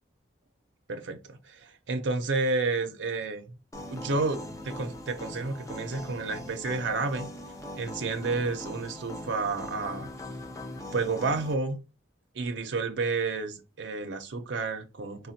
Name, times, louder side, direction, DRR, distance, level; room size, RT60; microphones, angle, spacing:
voice 1, 0.9-3.6 3.9-7.3 7.8-10.1 10.9-11.8 12.3-15.3, right 3 dB, 75° right, 0.6 m, -30 dB
sound 1, 3.7-11.5, left 1 dB, 15° left, 0.4 m, -41 dB
4.2 x 2.2 x 2.6 m
head